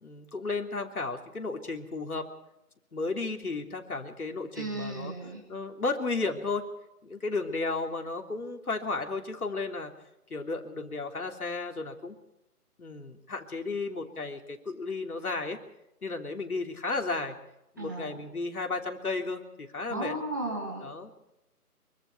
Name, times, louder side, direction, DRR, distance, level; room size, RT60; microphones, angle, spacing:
voice 1, 0.0-2.3 2.9-5.1 5.5-6.7 7.0-9.9 10.3-12.2 12.8-15.6 16.0-17.4 17.8-20.2 20.8-21.1, left 3 dB, 65° left, 3 dB, 3.4 m, -33 dB
voice 2, 4.5-5.4 17.8-18.2 19.9-20.9, right 2 dB, 10° right, 0 dB, 1.5 m, -35 dB
25.0 x 24.0 x 4.7 m, 0.88 s
figure-of-eight pair, 170°, 46 cm